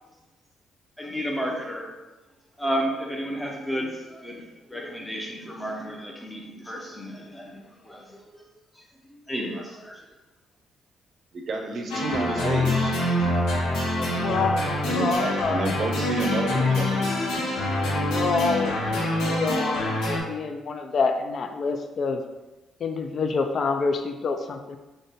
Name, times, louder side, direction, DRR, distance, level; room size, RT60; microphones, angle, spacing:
voice 1, 1.0-1.9 2.6-8.4 8.7-8.8 9.3-10.0, equal, 10° left, -1 dB, 0.6 m, -32 dB
voice 2, 11.3-13.0 14.9-17.0 17.4-17.9, right 2 dB, 50° right, 3 dB, 0.6 m, -31 dB
sound 1, 11.9-20.2, left 1 dB, 85° left, 0.7 m, -25 dB
voice 3, 14.0-15.7 17.3-17.4 18.1-22.2 22.8-24.8, left 4 dB, 55° left, 6 dB, 0.3 m, -27 dB
3.7 x 2.2 x 3.9 m, 1.1 s
cardioid pair, 90°, 0 cm